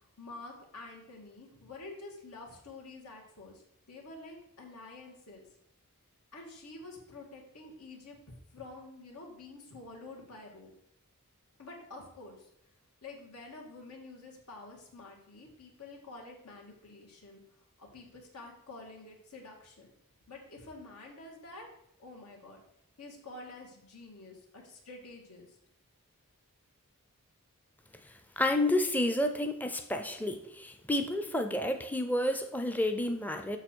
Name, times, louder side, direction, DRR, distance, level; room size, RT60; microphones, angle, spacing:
voice 1, 0.2-3.6 3.9-5.5 6.3-10.7 11.6-12.4 13.0-17.4 17.8-19.9 20.3-21.7 22.0-22.6 23.0-25.5, left 2 dB, 90° left, 0 dB, 2.0 m, -48 dB
voice 2, 28.4-33.6, left 1 dB, 5° left, 6 dB, 0.5 m, -30 dB
7.0 x 6.0 x 4.4 m, 0.74 s
head